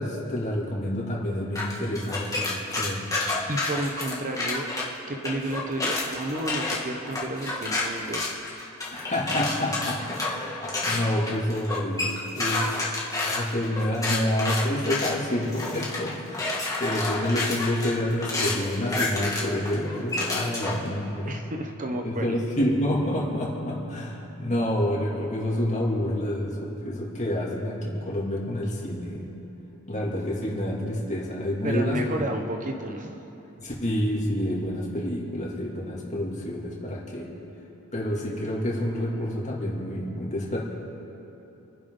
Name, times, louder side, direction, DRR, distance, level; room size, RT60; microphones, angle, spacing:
voice 1, 0.0-3.0 8.9-12.1 12.3-12.6 13.2-16.5 16.8-21.4 22.0-29.3 29.9-32.3 33.6-37.3 37.9-40.6, left 1 dB, 35° left, -3 dB, 2.7 m, -28 dB
sound 1, 1.6-4.8 5.2-20.9, left 2 dB, 15° left, 2.2 m, -29 dB
voice 2, 3.5-4.7 5.1-8.4 21.3-22.4 31.6-33.2, right 1 dB, 40° right, 4 dB, 1.0 m, -31 dB
28.0 x 10.5 x 3.9 m, 3.0 s
head